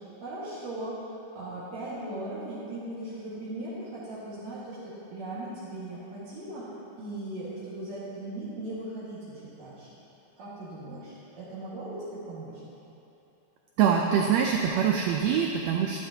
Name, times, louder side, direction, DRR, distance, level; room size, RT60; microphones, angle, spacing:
voice 1, 0.2-0.9 1.3-6.6 7.0-9.9 10.4-12.0 12.3-12.6, right 1 dB, 60° right, -10 dB, 2.9 m, -38 dB
voice 2, 13.8-16.0, right 7 dB, 85° right, 1 dB, 1.5 m, -24 dB
12.0 x 11.5 x 2.8 m, 2.9 s
omnidirectional pair, 3.7 m